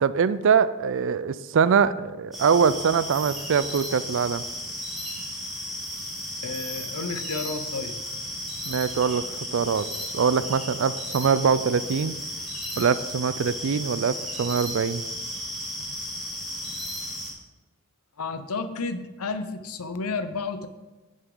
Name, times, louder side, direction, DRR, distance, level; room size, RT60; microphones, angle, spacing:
voice 1, 0.0-4.4 8.7-9.9 10.1-12.2 12.8-15.0, right 6 dB, 60° right, 16 dB, 0.4 m, -23 dB
sound 1, 2.3-17.3, equal, ahead, 2.2 m, -34 dB
voice 2, 6.4-8.0 18.2-20.7, left 4 dB, 90° left, 10 dB, 0.7 m, -31 dB
10.5 x 6.6 x 3.9 m, 1.1 s
head